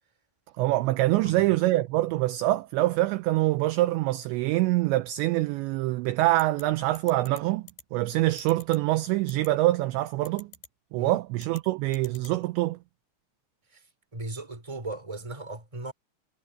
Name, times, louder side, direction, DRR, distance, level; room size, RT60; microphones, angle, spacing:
voice 1, 0.6-10.5 10.9-12.8, right 17 dB, 85° right, 2.6 m, -25 dB
sound 1, 6.4-6.6 7.0-7.4 7.7-7.8 8.4-8.8 9.3-9.5 10.3-10.7 11.4-11.6 11.9-12.3, left 8 dB, 55° left, 4.7 m, -46 dB
voice 2, 14.1-15.9, right 2 dB, 5° right, 3.0 m, -37 dB
omnidirectional pair, 5.9 m